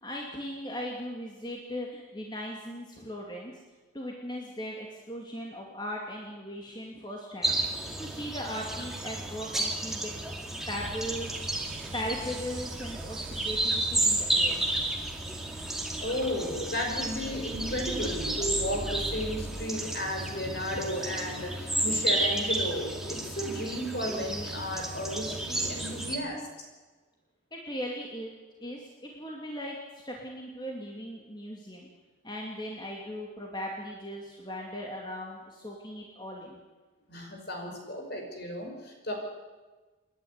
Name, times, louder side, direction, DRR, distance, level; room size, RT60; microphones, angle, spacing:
voice 1, 0.0-3.5 3.9-7.6 8.0-10.1 10.7-11.3 11.9-14.7 27.5-28.3 28.6-31.9 32.2-36.6, equal, 20° left, -1 dB, 2.5 m, -38 dB
sound 1, 7.4-26.2, right 2 dB, ahead, 2.1 m, -32 dB
sound 2, 10.7-19.6, right 2 dB, 75° right, 1.3 m, -43 dB
voice 2, 16.0-26.5 37.1-39.1, equal, 50° left, 2 dB, 5.5 m, -34 dB
29.0 x 11.0 x 9.5 m, 1.3 s
head